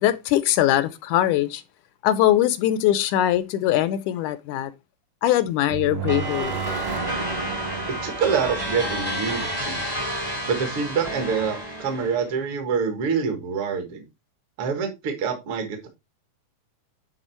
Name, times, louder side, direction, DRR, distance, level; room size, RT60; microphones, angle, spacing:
voice 1, 0.0-1.6 2.0-4.7 5.2-6.6, left 13 dB, 80° left, 2.0 m, -21 dB
sound 1, 5.7-9.8, right 11 dB, 90° right, 2.3 m, -34 dB
sound 2, 6.1-12.3, equal, 20° right, 0.6 m, -30 dB
voice 2, 8.0-9.8 10.5-14.0 14.6-15.9, right 6 dB, 50° right, 2.0 m, -26 dB
10.0 x 3.9 x 4.3 m
omnidirectional pair, 3.7 m